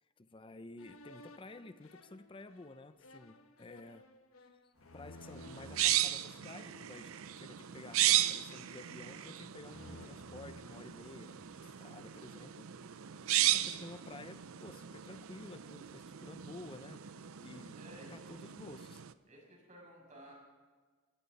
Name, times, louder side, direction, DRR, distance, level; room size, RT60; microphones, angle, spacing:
voice 1, 0.2-4.1 4.3-4.6 4.9-7.1 7.4-13.0 13.5-17.0 17.4-17.8 18.1-19.0, left 2 dB, 25° left, 12 dB, 0.6 m, -52 dB
sound 1, 0.8-6.0 6.7-7.2 7.8-9.3 9.6-11.6, left 2 dB, 80° left, 1.2 m, -56 dB
sound 2, 5.3-19.1, right 13 dB, 85° right, 0.6 m, -36 dB
voice 2, 13.0-13.5 17.7-18.3 19.3-20.3, right 1 dB, 35° right, -2 dB, 6.5 m, -56 dB
20.5 x 15.0 x 4.1 m, 1.4 s
head